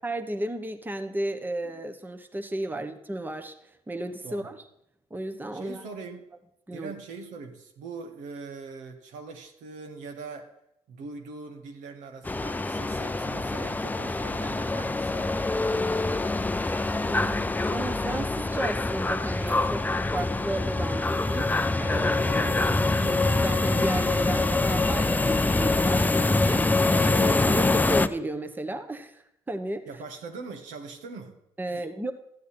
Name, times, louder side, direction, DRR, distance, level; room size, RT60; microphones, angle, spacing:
voice 1, 0.0-4.6 5.1-5.8 6.7-6.9 17.1-21.5 21.8-26.7 27.1-29.8 31.6-32.1, right 1 dB, 15° right, 6 dB, 1.1 m, -34 dB
voice 2, 5.5-6.3 6.7-10.5 10.9-15.3 16.6-16.8 23.0-23.1 27.4-27.6 29.9-31.4 31.7-31.9, right 4 dB, 75° right, 3 dB, 1.5 m, -41 dB
sound 1, 12.3-28.1, left 2 dB, 15° left, 0.5 m, -25 dB
13.0 x 8.2 x 4.3 m, 0.78 s
supercardioid pair, 65°, 13 cm